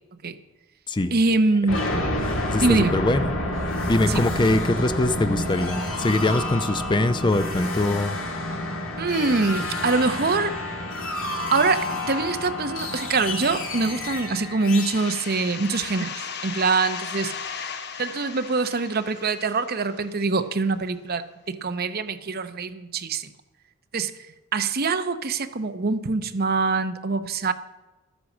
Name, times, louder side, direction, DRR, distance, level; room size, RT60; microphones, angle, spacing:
voice 1, 1.1-1.8 2.6-3.0 4.1-4.2 9.0-10.6 11.5-17.3 18.0-23.3 23.9-24.1 24.5-27.5, right 3 dB, 45° right, 9 dB, 0.8 m, -24 dB
sound 1, 1.7-16.4, left 1 dB, 65° left, 2.4 m, -29 dB
voice 2, 2.5-3.3 3.9-8.1, left 2 dB, 20° left, 11 dB, 0.5 m, -23 dB
sound 2, 14.8-20.3, left 6 dB, 50° left, 0.9 m, -36 dB
13.0 x 9.5 x 7.2 m, 1.1 s
head